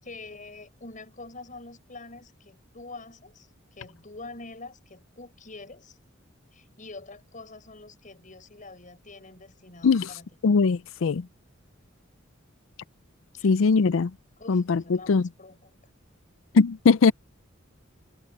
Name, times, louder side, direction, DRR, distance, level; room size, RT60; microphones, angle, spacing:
voice 1, 0.0-6.0 6.5-10.3 13.3-13.5 14.4-15.8, left 3 dB, 40° left, 6.9 m, -45 dB
voice 2, 10.4-11.3 13.4-14.1 14.5-15.3 16.5-17.1, left 4 dB, 70° left, 0.5 m, -20 dB
head